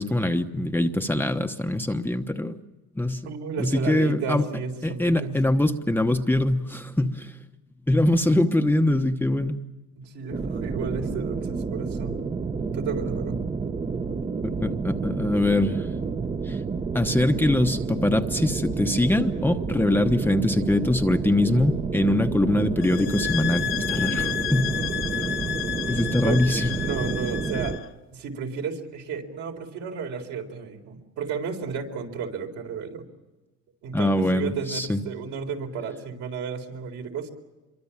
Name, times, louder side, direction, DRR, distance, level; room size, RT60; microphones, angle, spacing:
voice 1, 0.0-2.6 3.0-3.2 3.6-4.4 4.8-7.3 7.9-9.6 14.4-15.9 16.4-16.6 16.9-24.7 25.2-25.3 25.9-26.7 33.9-35.0, left 1 dB, 5° left, 5 dB, 1.0 m, -23 dB
voice 2, 3.2-5.4 10.0-12.2 12.7-13.4 26.2-26.4 26.8-27.8 28.1-33.0 33.8-37.3, right 5 dB, 70° right, 2 dB, 4.2 m, -32 dB
sound 1, 10.3-27.8, right 4 dB, 20° right, 0.9 m, -30 dB
sound 2, 22.8-27.9, left 11 dB, 40° left, 1.4 m, -31 dB
26.5 x 23.5 x 7.3 m, 1.2 s
cardioid pair, 115°, 30 cm